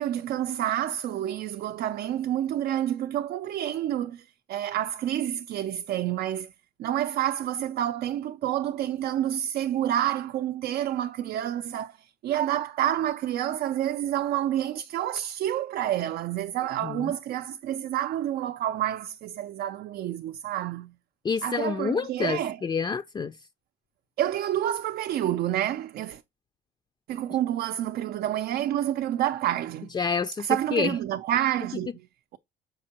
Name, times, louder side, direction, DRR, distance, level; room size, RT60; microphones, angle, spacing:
voice 1, 0.0-6.5 6.8-20.9 21.4-22.6 24.2-26.2 27.1-29.9 30.4-31.9, right 11 dB, 65° right, 0.5 m, -28 dB
voice 2, 16.8-17.1 21.2-23.4 29.9-31.0, left 5 dB, 25° left, 0.5 m, -28 dB
7.4 x 5.3 x 2.9 m
cardioid pair, 110°, 17 cm